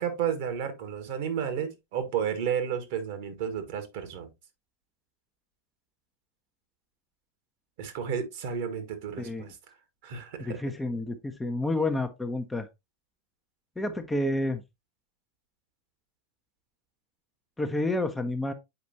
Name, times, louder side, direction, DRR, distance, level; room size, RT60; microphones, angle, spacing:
voice 1, 0.0-4.3 7.8-9.6 10.0-10.6, right 8 dB, 50° right, 1.6 m, -32 dB
voice 2, 10.4-12.7 13.8-14.6 17.6-18.5, left 2 dB, 5° left, 0.8 m, -29 dB
7.9 x 5.1 x 2.8 m
figure-of-eight pair, 90°, 0 cm